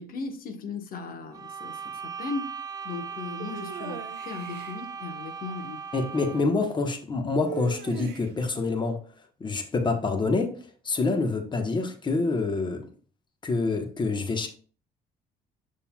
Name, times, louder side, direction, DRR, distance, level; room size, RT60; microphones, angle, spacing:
voice 1, 0.0-2.6 2.8-5.8, left 4 dB, 60° left, 1.3 m, -37 dB
sound 1, 1.3-6.6, right 6 dB, 20° right, 0.7 m, -38 dB
sound 2, 3.4-4.8 7.4-8.5, right 10 dB, 85° right, 0.8 m, -39 dB
voice 2, 5.9-9.0 9.4-10.6 10.8-12.9 13.4-14.5, left 3 dB, 25° left, 1.2 m, -26 dB
7.4 x 6.6 x 2.3 m
cardioid pair, 110°, 17 cm